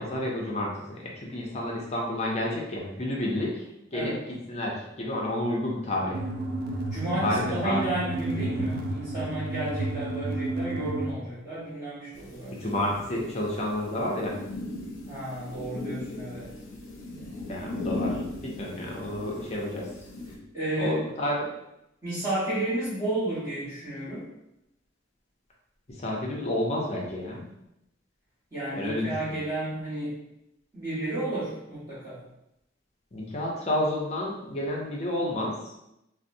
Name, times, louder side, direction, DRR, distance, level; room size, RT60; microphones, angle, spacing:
voice 1, 0.0-3.6 3.9-4.1 4.5-6.2 7.2-7.8 12.6-14.4 17.5-19.9 20.8-21.5 25.9-27.5 28.7-29.4 33.1-35.6, left 1 dB, 35° left, -2 dB, 0.5 m, -30 dB
sound 1, 6.1-11.1, right 2 dB, 50° right, 0.4 m, -31 dB
voice 2, 6.9-12.8 15.1-16.5 20.5-21.0 22.0-24.2 28.5-30.2 30.7-32.2, right 1 dB, 15° right, -12 dB, 1.1 m, -32 dB
sound 2, 12.1-20.4, left 2 dB, 85° left, 0.6 m, -38 dB
3.9 x 2.0 x 2.6 m, 0.86 s
head